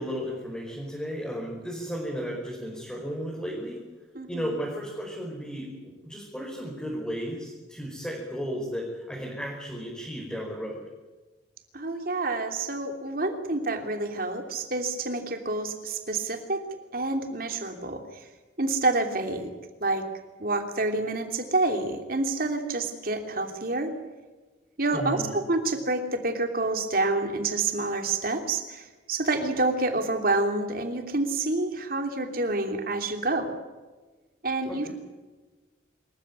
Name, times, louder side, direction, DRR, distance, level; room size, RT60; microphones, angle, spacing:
voice 1, 0.0-3.8 4.3-10.8 24.9-25.3 34.7-34.9, equal, 5° left, -3 dB, 5.1 m, -34 dB
voice 2, 4.1-4.6 11.7-16.6 16.9-18.0 18.6-19.5 19.8-20.1 20.4-23.9 24.8-33.5 34.4-34.9, right 2 dB, 50° right, 5 dB, 3.1 m, -28 dB
26.5 x 15.0 x 9.6 m, 1.2 s
head